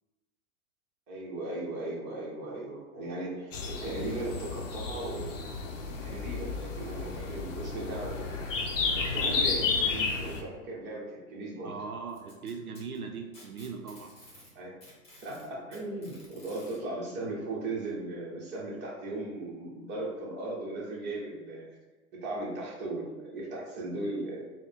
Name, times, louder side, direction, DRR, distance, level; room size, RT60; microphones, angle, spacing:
voice 1, 1.1-5.5 6.0-8.4 8.9-11.7 14.5-14.8 15.2-21.8 22.2-24.4, right 2 dB, 25° right, -4 dB, 1.0 m, -37 dB
sound 1, 3.5-10.4, left 4 dB, 60° left, 0.7 m, -32 dB
voice 2, 11.6-14.1, right 5 dB, 85° right, 4 dB, 0.5 m, -40 dB
Packing tape duct tape, 12.1-14.5 14.8-16.8 17.9-18.0 18.5-18.6 19.5-19.6, left 1 dB, 15° left, 1.3 m, -53 dB
3.6 x 2.1 x 3.7 m, 1.3 s
figure-of-eight pair, 105°, 42 cm